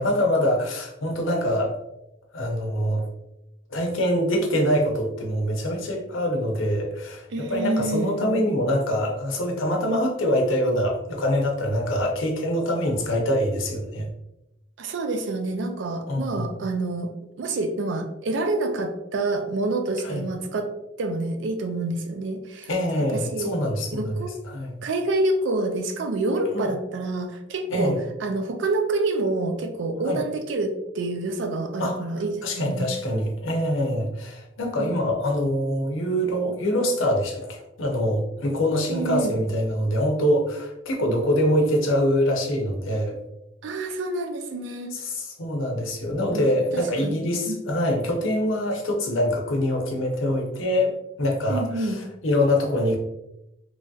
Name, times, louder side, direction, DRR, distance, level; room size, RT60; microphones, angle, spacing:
voice 1, 0.0-1.8 2.3-3.0 3.7-14.1 16.1-16.6 20.0-20.2 22.7-24.2 24.4-24.7 26.5-26.7 27.7-28.0 30.1-30.2 31.8-32.1 32.4-43.2 44.9-53.0, equal, 80° left, 1 dB, 0.7 m, -24 dB
voice 2, 7.3-8.4 14.8-17.1 17.4-20.7 21.0-22.7 23.1-23.5 23.9-24.3 24.8-27.9 28.2-32.9 34.8-34.9 38.9-39.4 43.6-44.9 46.3-46.5 46.7-47.6 51.5-52.0, right 2 dB, 65° right, 6 dB, 0.4 m, -27 dB
3.1 x 2.6 x 2.3 m, 0.89 s
head